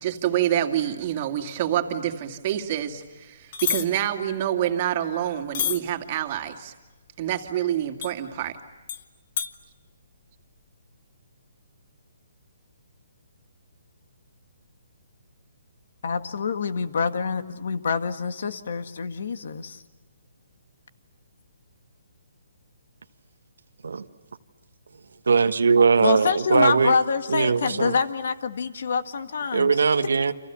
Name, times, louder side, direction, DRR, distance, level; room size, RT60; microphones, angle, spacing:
voice 1, 0.0-6.7 7.2-8.6, right 11 dB, 35° right, 4 dB, 2.3 m, -27 dB
sound 1, 3.5-3.8 5.5-5.8 8.0-8.1 8.9-9.0 9.4-9.5, left 9 dB, 40° left, 1.4 m, -27 dB
voice 2, 16.0-19.8 26.0-29.7, left 5 dB, 65° left, 9 dB, 1.8 m, -26 dB
voice 3, 25.3-26.9 27.3-27.9 29.5-30.3, right 5 dB, 85° right, 7 dB, 1.3 m, -20 dB
30.0 x 27.5 x 7.0 m, 1.2 s
hypercardioid pair, 160°, 0 cm